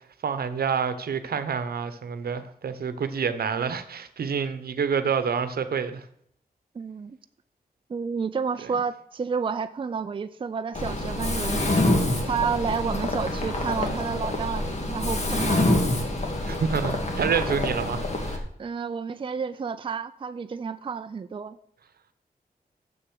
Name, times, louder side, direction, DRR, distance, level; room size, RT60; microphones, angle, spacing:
voice 1, 0.2-6.1 16.5-18.4, right 6 dB, 85° right, 0.9 m, -28 dB
voice 2, 6.7-7.2 7.9-11.8 12.3-15.8 18.6-21.6, right 6 dB, 35° right, 0.4 m, -30 dB
Mechanisms, 10.8-18.4, left 1 dB, 45° left, 1.8 m, -26 dB
7.1 x 6.7 x 6.3 m
wide cardioid pair, 120°, 15 cm